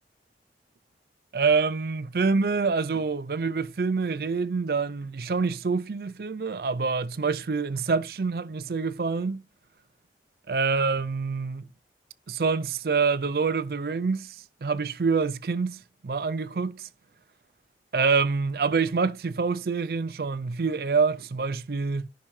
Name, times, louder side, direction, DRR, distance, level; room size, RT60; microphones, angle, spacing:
voice 1, 1.3-9.4 10.5-11.7 12.3-16.9 17.9-22.1, right 4 dB, 60° right, 0.4 m, -26 dB
13.5 x 5.5 x 3.1 m
head